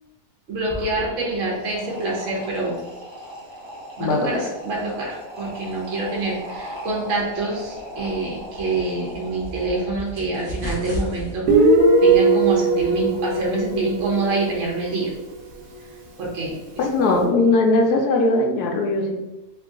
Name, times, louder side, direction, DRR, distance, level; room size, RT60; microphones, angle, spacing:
voice 1, 0.5-2.8 4.0-11.7 12.0-15.1 16.2-17.2, right 2 dB, 55° right, -3 dB, 1.1 m, -26 dB
sound 1, 0.6-10.3, equal, 35° right, 0.4 m, -37 dB
voice 2, 4.0-4.4 16.8-19.2, left 2 dB, 80° left, 2 dB, 1.1 m, -19 dB
sound 2, 8.5-14.7, right 1 dB, 20° left, 0.8 m, -36 dB
Guitar, 11.5-15.0, right 3 dB, 75° right, 1.2 m, -18 dB
3.0 x 2.8 x 3.6 m, 1.1 s
omnidirectional pair, 1.7 m